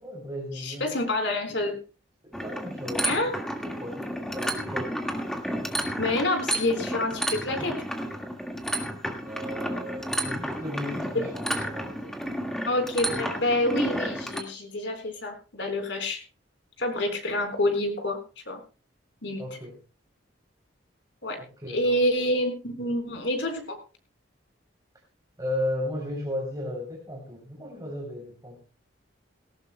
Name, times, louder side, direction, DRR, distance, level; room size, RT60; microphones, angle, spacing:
voice 1, 0.0-0.9 2.2-5.0 7.6-7.7 9.2-12.5 19.4-19.8 21.4-22.0 25.4-28.6, left 1 dB, 20° right, 0 dB, 3.4 m, -35 dB
voice 2, 0.6-1.8 3.0-3.3 6.0-7.7 11.1-11.2 12.7-16.2 16.8-18.2 18.5-18.6 19.2-19.4 21.2-21.4 21.7-23.8, left 1 dB, 70° left, 5 dB, 4.2 m, -27 dB
sound 1, 2.3-14.4, equal, 5° left, 1.8 m, -31 dB
18.5 x 18.0 x 2.2 m, 0.34 s
head